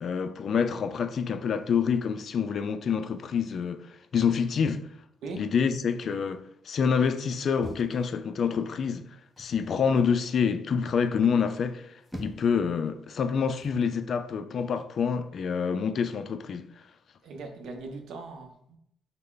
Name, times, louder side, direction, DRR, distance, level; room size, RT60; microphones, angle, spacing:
voice 1, 0.0-4.9 5.4-9.1 9.4-16.7, left 6 dB, 55° left, 0.3 m, -27 dB
sound 1, 7.6-8.6 9.4-9.8 11.7-12.6 13.6-13.9, equal, ahead, 0.6 m, -43 dB
voice 2, 17.2-18.8, right 3 dB, 80° right, 0.6 m, -40 dB
3.2 x 2.0 x 3.7 m
cardioid pair, 90°, 0 cm